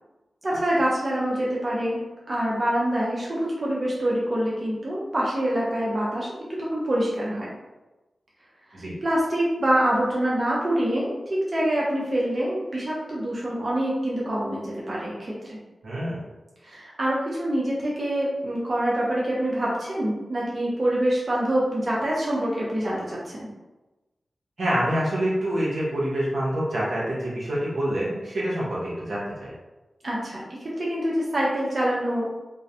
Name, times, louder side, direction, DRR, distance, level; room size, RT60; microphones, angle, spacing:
voice 1, 0.4-7.5 8.7-15.6 16.6-23.5 30.0-32.2, right 1 dB, 45° right, -6 dB, 0.6 m, -26 dB
voice 2, 15.8-16.2 24.6-29.5, right 1 dB, 80° right, -6 dB, 0.8 m, -26 dB
2.3 x 2.0 x 2.7 m, 1.1 s
cardioid pair, 55°, 0 cm